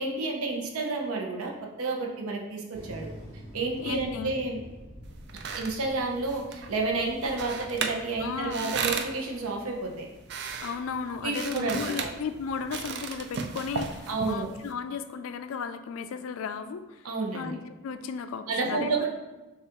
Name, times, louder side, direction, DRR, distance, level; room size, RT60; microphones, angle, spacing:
voice 1, 0.0-1.5 1.8-3.1 3.5-4.6 5.6-10.1 11.2-12.1 14.1-14.5 17.0-17.6 18.5-19.1, right 3 dB, 85° right, 1 dB, 0.7 m, -30 dB
sound 1, 2.7-9.0, equal, 25° right, 0.7 m, -46 dB
voice 2, 3.8-4.4 8.2-8.7 10.6-17.1 17.3-19.1, left 6 dB, 75° left, 10 dB, 0.3 m, -35 dB
sound 2, 5.0-14.7, right 5 dB, 50° right, 0.3 m, -36 dB
6.7 x 2.4 x 2.9 m, 1.1 s
head